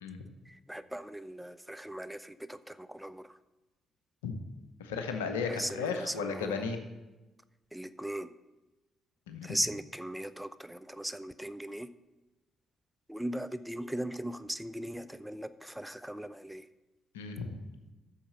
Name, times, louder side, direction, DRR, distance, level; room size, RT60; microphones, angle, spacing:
voice 1, 0.5-3.4 5.5-6.7 7.7-8.3 9.4-11.9 13.1-16.7, right 1 dB, 5° right, 13 dB, 0.5 m, -38 dB
voice 2, 4.8-6.8 9.3-9.6 17.1-17.6, left 5 dB, 75° left, 6 dB, 0.8 m, -35 dB
8.6 x 6.6 x 6.8 m, 1.1 s
figure-of-eight pair, 45°, 0 cm